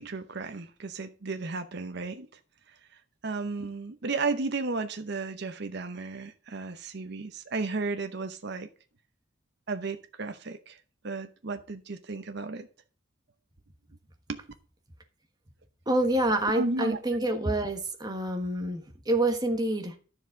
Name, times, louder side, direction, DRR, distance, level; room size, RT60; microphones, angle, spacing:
voice 1, 0.0-2.3 3.2-8.7 9.7-10.8 11.0-12.7 14.3-14.4 16.5-17.0, right 3 dB, 55° right, 0.8 m, -33 dB
voice 2, 15.9-19.9, right 1 dB, 20° right, 1.3 m, -27 dB
10.5 x 7.1 x 3.8 m
head